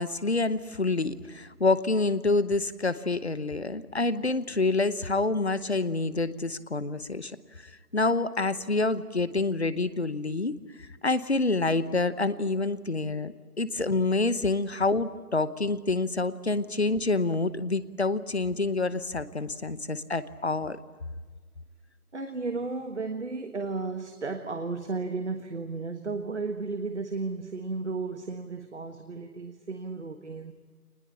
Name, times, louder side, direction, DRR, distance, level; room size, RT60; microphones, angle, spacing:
voice 1, 0.0-7.4 7.6-20.8, left 3 dB, 45° left, 15 dB, 1.0 m, -27 dB
voice 2, 22.1-30.5, right 4 dB, 45° right, 7 dB, 1.5 m, -34 dB
24.0 x 20.0 x 8.5 m, 1.4 s
figure-of-eight pair, 170°, 46 cm